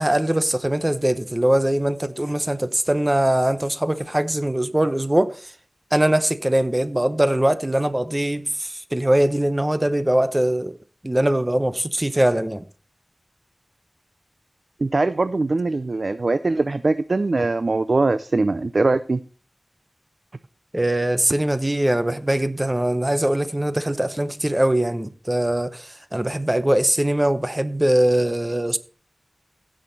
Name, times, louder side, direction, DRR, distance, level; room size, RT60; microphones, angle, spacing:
voice 1, 0.0-5.5 5.9-10.8 11.0-12.6 20.7-28.8, right 1 dB, 20° right, 0.9 m, -21 dB
voice 2, 14.8-19.2, right 3 dB, 65° right, 0.5 m, -21 dB
16.0 x 6.4 x 4.0 m
wide cardioid pair, 65°, 0 cm